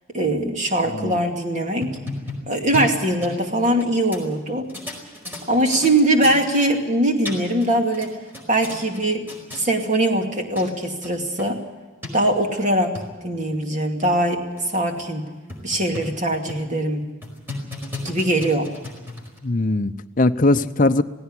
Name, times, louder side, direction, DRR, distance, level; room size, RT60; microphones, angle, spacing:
voice 1, 0.1-2.0 2.5-4.7 5.5-8.1 8.5-9.3 9.5-11.6 12.1-12.9 13.2-15.2 15.6-17.1 18.0-18.7, right 1 dB, 35° right, 3 dB, 2.4 m, -21 dB
sound 1, 1.8-3.9 4.1-4.2 4.7-5.9 6.2-6.4 7.0-7.7 7.9-9.0 9.3-9.6 10.3-10.4 10.6-10.7 11.0-11.1 11.4-11.5 12.0-12.1 12.7-13.1 13.6-13.7 14.0-14.1 14.6-14.7 15.0-15.1 15.5-16.2 16.5-16.7 17.2-19.4, left 2 dB, 10° right, 5.0 m, -34 dB
voice 2, 19.4-21.0, left 2 dB, 40° left, 10 dB, 0.7 m, -20 dB
18.0 x 16.5 x 9.7 m, 1.3 s
head